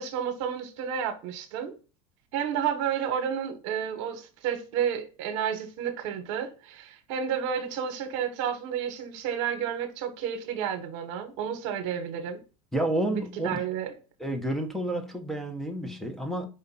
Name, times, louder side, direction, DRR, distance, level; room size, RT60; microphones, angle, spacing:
voice 1, 0.0-1.7 2.3-12.4 13.4-13.9, right 8 dB, 70° right, 1.1 m, -31 dB
voice 2, 12.7-13.7 14.2-16.5, right 1 dB, ahead, 0.9 m, -30 dB
5.1 x 2.5 x 4.1 m
supercardioid pair, 100°, 16 cm